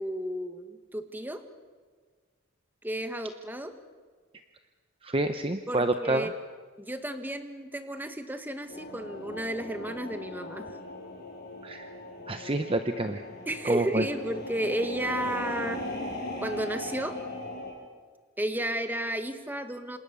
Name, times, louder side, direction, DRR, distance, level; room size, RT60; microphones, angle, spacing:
voice 1, 0.0-1.4 2.8-3.7 5.7-6.3 6.8-10.7 13.5-15.8 16.4-17.2 18.4-20.0, right 1 dB, 10° right, 8 dB, 1.6 m, -33 dB
voice 2, 5.0-6.3 11.6-11.9 12.3-13.2 13.6-14.1, right 2 dB, 25° right, 8 dB, 0.8 m, -28 dB
sound 1, 8.7-17.7, left 1 dB, 50° left, 6.9 m, -39 dB
27.5 x 27.0 x 6.9 m, 1.5 s
head